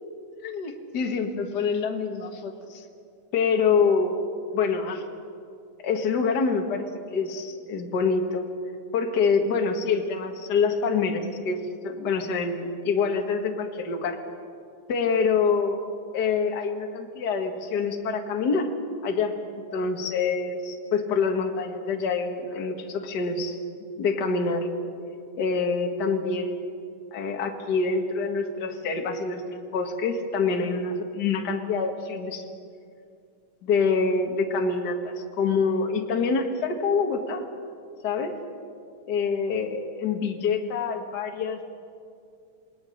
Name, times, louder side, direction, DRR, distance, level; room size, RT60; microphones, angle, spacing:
voice 1, 0.4-2.8 3.3-4.2 4.5-5.0 5.8-8.5 8.9-11.6 11.8-14.2 14.9-15.8 16.1-18.7 19.0-23.6 24.0-24.7 25.4-26.7 27.1-32.4 33.6-37.5 38.0-38.3 39.1-41.6, left 5 dB, 40° left, 3 dB, 1.8 m, -26 dB
28.0 x 19.0 x 6.5 m, 2.4 s
omnidirectional pair, 3.3 m